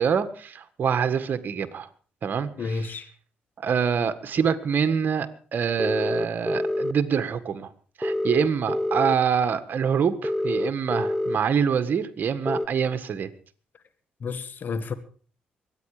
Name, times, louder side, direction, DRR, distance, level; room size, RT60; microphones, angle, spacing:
voice 1, 0.0-1.9 2.2-2.9 3.6-7.7 8.0-13.3, right 7 dB, 55° right, 1.7 m, -25 dB
voice 2, 2.6-3.1 14.2-14.9, left 4 dB, 55° left, 1.8 m, -31 dB
sound 1, 5.8-6.9 8.0-9.1 10.2-11.4 12.5-12.7, left 1 dB, 5° left, 1.0 m, -26 dB
23.0 x 9.6 x 5.0 m
supercardioid pair, 55°, 4 cm